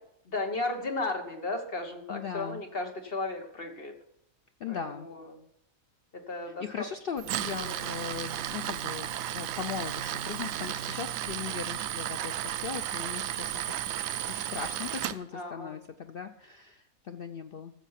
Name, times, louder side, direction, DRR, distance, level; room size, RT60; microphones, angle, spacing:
voice 1, 0.2-3.9 4.7-5.2 6.1-6.8 7.7-7.8 15.3-15.8, left 2 dB, 40° left, 4 dB, 1.6 m, -35 dB
voice 2, 2.1-2.6 4.6-5.1 6.4-17.7, left 7 dB, 60° left, 8 dB, 0.6 m, -39 dB
Tools, 7.2-15.1, right 11 dB, 75° right, 1.0 m, -34 dB
14.5 x 7.3 x 5.8 m, 0.77 s
omnidirectional pair, 1.5 m